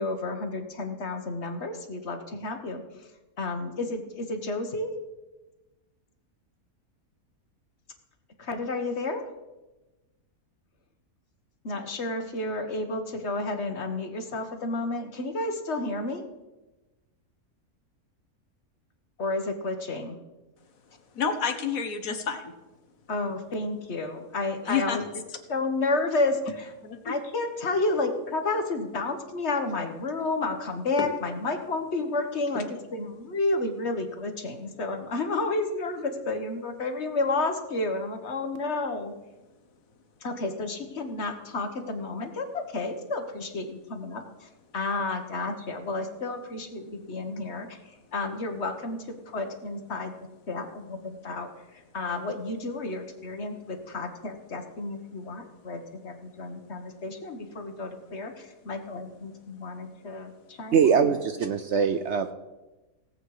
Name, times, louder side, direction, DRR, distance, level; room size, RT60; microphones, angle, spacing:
voice 1, 0.0-2.8 3.4-4.9 8.4-9.2 11.6-16.2 19.2-20.2 23.1-25.0 25.5-26.4 27.0-32.7 32.9-39.1 40.2-47.8 48.1-50.1 50.5-51.5 51.9-61.1, left 2 dB, 50° left, 6 dB, 1.5 m, -31 dB
voice 2, 21.1-22.5 24.6-25.4 26.8-27.1 31.0-31.1 32.5-32.6, left 6 dB, 65° left, 8 dB, 1.5 m, -30 dB
voice 3, 60.7-62.3, right 6 dB, 60° right, 9 dB, 0.8 m, -22 dB
18.0 x 7.8 x 4.8 m, 1.1 s
omnidirectional pair, 1.6 m